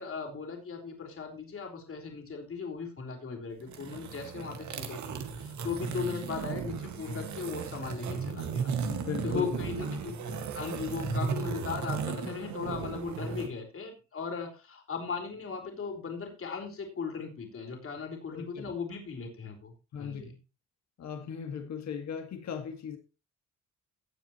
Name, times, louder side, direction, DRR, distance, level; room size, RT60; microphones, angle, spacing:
voice 1, 0.0-20.4, left 5 dB, 45° left, 4.3 m, -38 dB
sound 1, 3.6-13.5, right 5 dB, 70° right, 2.0 m, -35 dB
sound 2, 3.7-3.8 4.1-4.3 4.6-4.8 5.1-5.2 5.9-6.0 6.3-6.5 6.7-6.9 7.2-7.3 7.6-8.8 9.1-9.3 9.7-9.8 10.5-10.6 11.0-11.3 11.7-11.8 12.2-12.4, equal, 5° right, 2.2 m, -51 dB
voice 2, 8.9-10.0 18.3-18.7 19.9-20.3 21.0-23.0, left 7 dB, 65° left, 2.0 m, -38 dB
18.0 x 7.5 x 3.1 m
cardioid pair, 90°, 30 cm